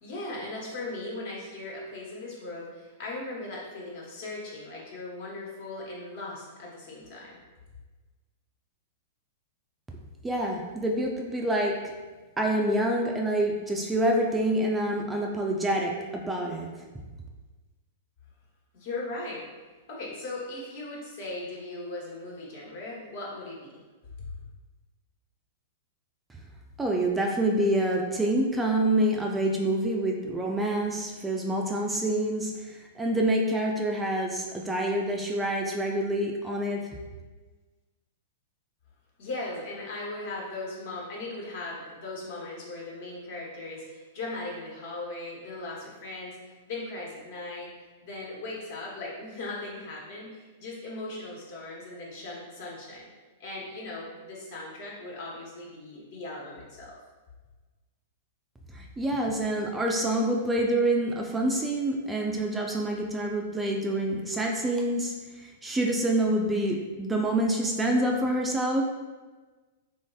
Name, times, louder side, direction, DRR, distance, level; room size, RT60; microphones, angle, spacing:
voice 1, 0.0-7.4 18.7-19.5 19.9-23.7 24.3-24.4 39.2-53.1 53.4-57.0, left 2 dB, 60° left, -4 dB, 1.0 m, -38 dB
voice 2, 10.2-11.8 12.4-16.7 26.8-36.9 58.7-68.8, right 1 dB, 10° right, 0 dB, 0.3 m, -27 dB
3.2 x 2.5 x 2.3 m, 1.3 s
hypercardioid pair, 120°, 0 cm